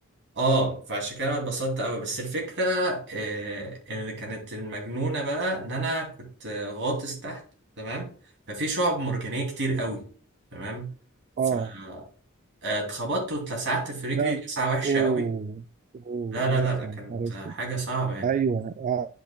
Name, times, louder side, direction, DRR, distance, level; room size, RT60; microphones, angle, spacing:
voice 1, 0.3-7.4 7.8-8.1 8.5-10.0 10.5-10.9 11.7-12.0 12.6-15.3 16.3-18.3, right 2 dB, 55° right, 2.9 m, -29 dB
voice 2, 11.4-11.7 14.1-14.4 14.8-15.6 15.9-17.6 18.2-19.1, right 6 dB, 35° right, 0.3 m, -28 dB
10.5 x 5.3 x 2.3 m
head